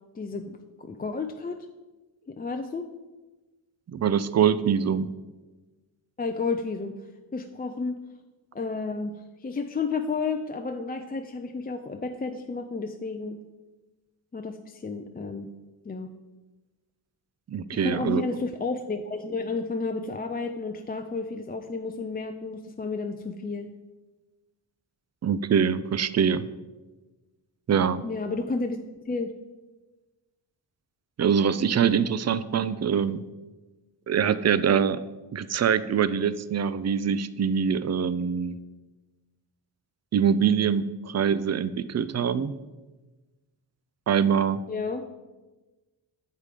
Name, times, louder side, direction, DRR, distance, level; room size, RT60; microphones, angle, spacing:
voice 1, 0.1-1.7 2.3-2.9 6.2-7.0 7.3-8.0 8.5-13.4 14.3-15.5 15.8-16.1 17.7-23.7 28.0-28.8 29.1-29.3 44.7-45.0, left 4 dB, 20° left, 5 dB, 0.5 m, -31 dB
voice 2, 3.9-5.1 17.5-18.2 25.2-26.5 27.7-28.0 31.2-33.2 34.1-35.0 35.3-38.6 40.1-42.6 44.1-44.6, right 7 dB, 35° right, 15 dB, 0.5 m, -24 dB
7.5 x 4.9 x 5.0 m, 1.2 s
cardioid pair, 55°, 46 cm